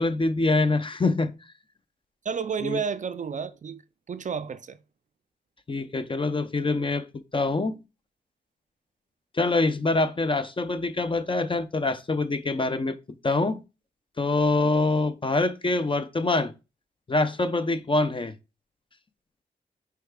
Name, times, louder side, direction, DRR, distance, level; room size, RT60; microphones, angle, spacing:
voice 1, 0.0-1.3 2.6-2.8 5.7-7.8 9.3-13.0 13.2-13.6 14.2-16.5 17.1-18.3, left 2 dB, 30° left, 0.6 m, -25 dB
voice 2, 2.2-3.8 4.1-4.8, right 6 dB, 45° right, 0.4 m, -31 dB
4.6 x 4.6 x 2.3 m
cardioid pair, 50°, 18 cm